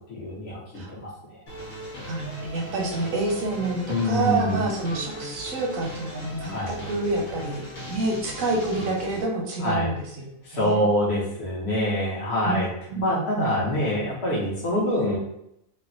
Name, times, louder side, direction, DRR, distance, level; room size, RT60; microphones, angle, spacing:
voice 1, 0.1-1.1 3.9-4.6 6.5-6.7 9.6-9.9 10.4-12.7 13.0-15.2, left 1 dB, 55° left, -4 dB, 1.0 m, -25 dB
sound 1, 1.5-9.2, equal, 85° left, 1.3 m, -38 dB
voice 2, 2.0-7.6 7.9-10.8 12.5-12.6 12.9-13.0 13.4-13.6, right 2 dB, 90° right, -1 dB, 1.1 m, -28 dB
3.3 x 2.1 x 2.5 m, 0.80 s
omnidirectional pair, 1.4 m